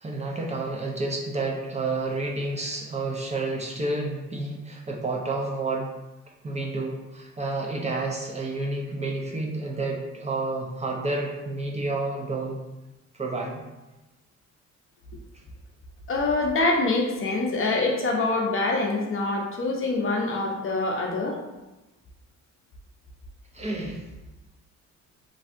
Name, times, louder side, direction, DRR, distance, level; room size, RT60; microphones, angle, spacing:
voice 1, 0.0-5.9 6.4-12.6 13.1-13.6 23.5-24.0, right 2 dB, 25° right, -1 dB, 0.5 m, -30 dB
voice 2, 16.1-21.4, left 2 dB, 45° left, 0 dB, 0.7 m, -25 dB
3.2 x 2.6 x 2.5 m, 1.0 s
cardioid pair, 90°, 30 cm